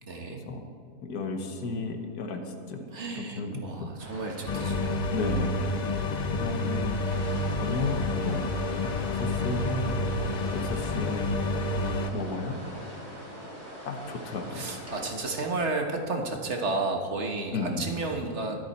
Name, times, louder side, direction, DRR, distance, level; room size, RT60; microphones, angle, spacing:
voice 1, 0.1-0.4 2.9-5.0 14.5-18.6, right 3 dB, 50° right, 2 dB, 1.5 m, -32 dB
voice 2, 1.0-2.9 3.1-3.9 5.1-5.6 6.3-6.9 7.6-8.4 8.8-10.0 10.5-11.4 11.7-12.6 13.8-14.7 17.5-17.9, left 3 dB, 80° left, 4 dB, 1.7 m, -33 dB
sound 1, 4.0-15.1, equal, 25° right, 3.5 m, -43 dB
sound 2, 4.5-12.1, left 2 dB, 50° left, 0.5 m, -29 dB
23.0 x 8.4 x 4.3 m, 2.5 s
omnidirectional pair, 1.6 m